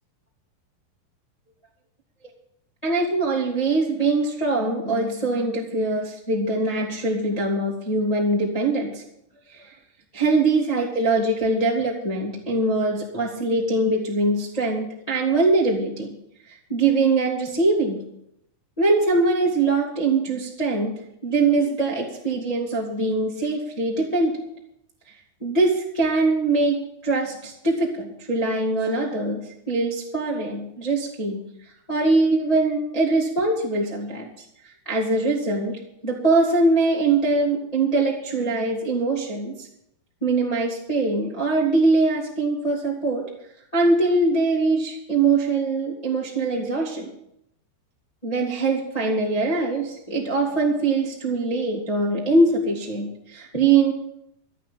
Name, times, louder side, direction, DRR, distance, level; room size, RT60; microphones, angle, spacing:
voice 1, 2.8-9.0 9.5-9.7 10.1-16.1 16.7-18.0 18.8-20.9 21.2-24.4 25.4-29.4 29.7-31.4 31.9-34.3 34.8-39.7 40.2-43.3 43.7-47.1 48.2-53.9, right 3 dB, 15° left, -3 dB, 1.5 m, -22 dB
13.0 x 8.7 x 8.6 m, 0.77 s
omnidirectional pair, 5.1 m